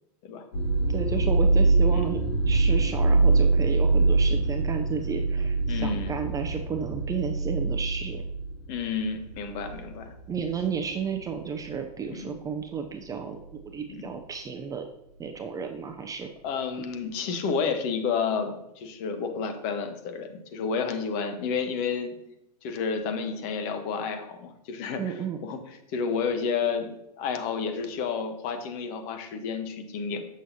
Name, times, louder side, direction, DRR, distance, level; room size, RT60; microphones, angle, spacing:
sound 1, 0.5-10.0 10.3-10.8 11.5-11.7, right 3 dB, 60° left, 2.1 m, -24 dB
voice 1, 0.9-8.2 10.3-14.9 15.2-16.3 25.0-25.4, right 6 dB, 15° right, 5 dB, 0.5 m, -33 dB
voice 2, 5.7-6.2 8.7-10.1 12.1-12.4 13.9-14.1 16.4-22.1 22.6-25.1 25.4-25.6 25.9-30.3, left 5 dB, 45° left, 7 dB, 1.1 m, -30 dB
7.5 x 6.2 x 2.8 m, 0.82 s
hypercardioid pair, 110°, 21 cm